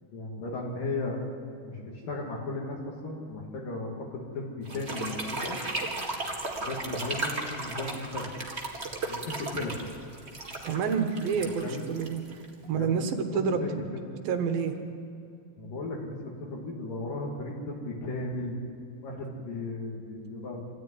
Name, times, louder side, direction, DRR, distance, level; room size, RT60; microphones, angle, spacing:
voice 1, 0.1-1.2 1.6-5.6 6.6-8.3 9.1-9.8 11.6-11.8 12.7-13.1 13.3-13.7 15.6-18.6 19.0-20.7, left 2 dB, 65° left, -1 dB, 3.6 m, -36 dB
sound 1, 4.6-12.7, right 2 dB, 25° right, 1.5 m, -35 dB
voice 2, 10.6-11.6 11.9-12.4 12.7-13.6 14.3-14.7, right 6 dB, 75° right, 6 dB, 3.0 m, -28 dB
26.5 x 14.0 x 9.6 m, 2.3 s
omnidirectional pair, 4.3 m